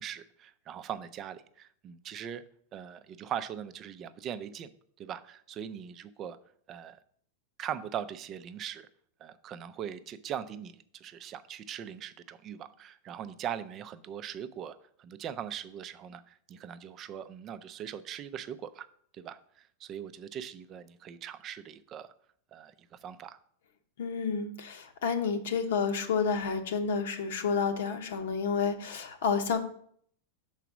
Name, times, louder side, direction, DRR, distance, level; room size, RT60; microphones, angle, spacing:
voice 1, 0.0-2.4 2.7-4.7 5.0-6.4 6.7-7.0 7.6-8.9 9.2-18.9 19.1-22.1 22.5-22.7 23.0-23.4, right 9 dB, 30° right, 12 dB, 0.4 m, -40 dB
voice 2, 24.0-29.6, left 5 dB, 75° left, 6 dB, 1.0 m, -30 dB
5.9 x 4.0 x 6.0 m, 0.63 s
supercardioid pair, 145°, 0 cm